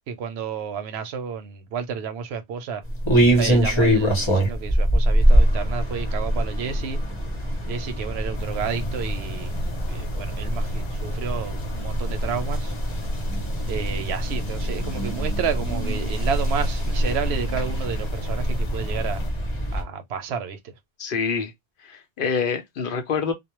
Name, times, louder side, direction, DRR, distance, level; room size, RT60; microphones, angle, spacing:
voice 1, 0.1-2.8 3.4-7.0 7.7-9.5 9.9-12.7 13.7-19.2 19.7-20.7, right 7 dB, 85° right, 0.8 m, -31 dB
sound 1, 2.8-19.8, equal, 30° left, 0.8 m, -24 dB
sound 2, 8.3-19.3, equal, 90° left, 0.9 m, -37 dB
voice 2, 21.0-21.5 21.9-23.3, left 6 dB, 65° left, 0.7 m, -26 dB
2.3 x 2.0 x 2.9 m
omnidirectional pair, 1.1 m